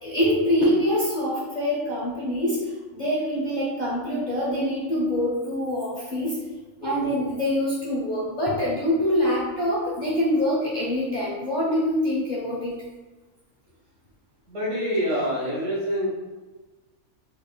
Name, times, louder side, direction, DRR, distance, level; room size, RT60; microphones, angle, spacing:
voice 1, 0.0-6.4 6.8-12.7, left 1 dB, 40° left, -7 dB, 0.8 m, -25 dB
voice 2, 6.8-7.1 14.5-16.1, equal, 60° right, -7 dB, 1.7 m, -26 dB
3.9 x 3.4 x 2.3 m, 1.2 s
omnidirectional pair, 1.6 m